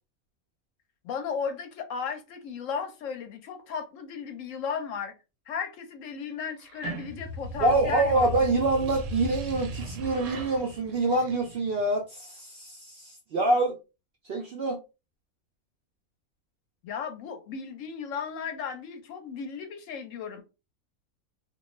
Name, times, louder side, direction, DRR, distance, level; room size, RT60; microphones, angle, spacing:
voice 1, 1.0-5.1 5.5-8.3 16.8-20.4, left 6 dB, 70° left, 0.9 m, -35 dB
sound 1, 6.6-11.9, equal, 80° right, 1.0 m, -38 dB
voice 2, 7.6-13.8 14.3-14.8, right 2 dB, 65° right, 0.6 m, -26 dB
2.5 x 2.2 x 3.0 m
omnidirectional pair, 1.5 m